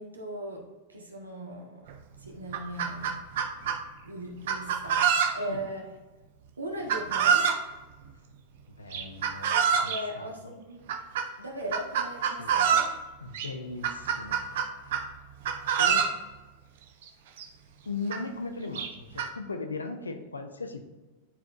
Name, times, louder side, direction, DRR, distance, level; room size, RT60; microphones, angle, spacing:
voice 1, 0.0-1.9 2.2-3.1 4.0-5.0 5.3-5.8 6.6-7.5 9.5-10.8 11.4-12.9, right 1 dB, 80° right, 1 dB, 1.3 m, -38 dB
Chicken rooster, 1.9-2.0 2.3-3.8 4.5-5.6 6.9-7.6 8.9-10.0 10.9-11.3 11.7-12.9 13.3-13.5 13.8-15.1 15.4-16.2 17.1-17.2 17.4-17.5 18.1-18.2 18.8-19.3, right 7 dB, 55° right, 0.7 m, -26 dB
voice 2, 8.7-10.5 12.4-12.5 13.2-14.4 14.8-14.9 15.8-16.1 17.9-20.8, left 3 dB, 75° left, 7 dB, 0.7 m, -38 dB
10.5 x 4.7 x 2.5 m, 1.2 s
figure-of-eight pair, 90°, 0 cm